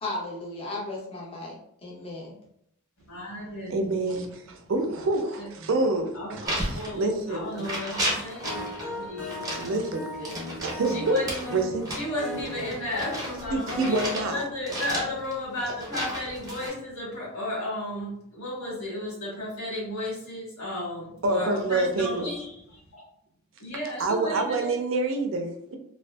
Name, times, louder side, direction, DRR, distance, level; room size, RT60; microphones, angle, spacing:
voice 1, 0.0-2.4, left 2 dB, 25° left, -4 dB, 0.5 m, -35 dB
voice 2, 3.0-4.0 5.4-5.7 6.1-9.5 10.2-11.5 11.9-22.6 23.6-24.7, left 1 dB, 75° left, -5 dB, 1.2 m, -34 dB
voice 3, 3.7-6.5 6.9-7.7 9.6-10.1 10.6-11.2 11.5-11.9 13.5-14.5 21.2-22.3 24.0-25.8, right 2 dB, 60° right, 4 dB, 0.4 m, -27 dB
sound 1, 6.4-7.3 7.6-8.8 9.2-14.3 14.7-16.7, right 1 dB, 15° right, 0.6 m, -33 dB
sound 2, 8.4-14.4, left 2 dB, 60° left, 0.8 m, -38 dB
2.5 x 2.2 x 2.2 m, 0.73 s
head